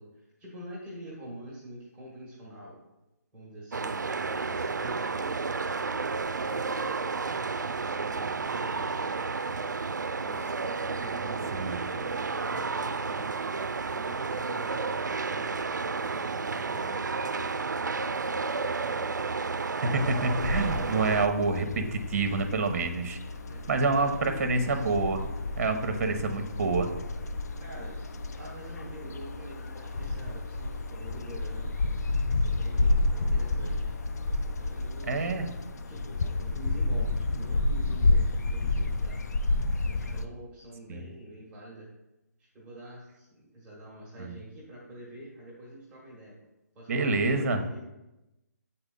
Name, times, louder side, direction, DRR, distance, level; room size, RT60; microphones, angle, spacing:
voice 1, 0.0-2.8 3.3-6.0 6.4-9.3 10.1-13.5 13.9-17.7 23.5-23.6 23.9-24.4 27.6-31.7 32.2-34.0 34.5-35.4 35.9-39.2 39.8-41.9 42.4-46.4 46.7-47.8, right 1 dB, 10° right, -6 dB, 1.4 m, -46 dB
sound 1, 3.7-21.3, right 4 dB, 90° right, 0.4 m, -31 dB
sound 2, 19.9-35.7, left 2 dB, 50° left, 0.9 m, -44 dB
voice 2, 19.9-23.2 23.7-25.3 25.6-26.9 35.1-35.4 40.9-41.0 44.2-44.3 46.9-47.6, right 3 dB, 50° right, 7 dB, 0.9 m, -27 dB
sound 3, 20.4-40.2, left 2 dB, 65° left, 0.5 m, -30 dB
7.9 x 4.2 x 3.8 m, 0.97 s
figure-of-eight pair, 150°, 10 cm